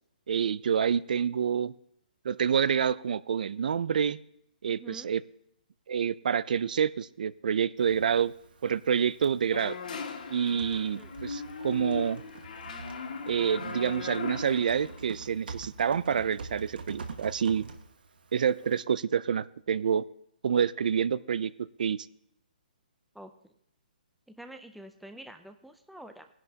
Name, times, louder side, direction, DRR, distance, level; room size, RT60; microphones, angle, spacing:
voice 1, 0.3-1.7 2.2-4.2 4.6-5.2 5.9-8.3 8.6-9.8 10.3-12.2 13.3-17.7 18.3-20.0 20.4-22.1, right 7 dB, 60° right, 19 dB, 0.4 m, -28 dB
voice 2, 4.6-5.1 10.7-11.1 23.1-23.5 24.3-26.3, right 1 dB, ahead, 6 dB, 0.4 m, -48 dB
Typing, 7.8-18.8, right 4 dB, 80° right, 1.6 m, -47 dB
sound 1, 9.5-15.2, left 5 dB, 60° left, 1.9 m, -39 dB
18.5 x 11.0 x 2.8 m, 0.74 s
hypercardioid pair, 170°, 5 cm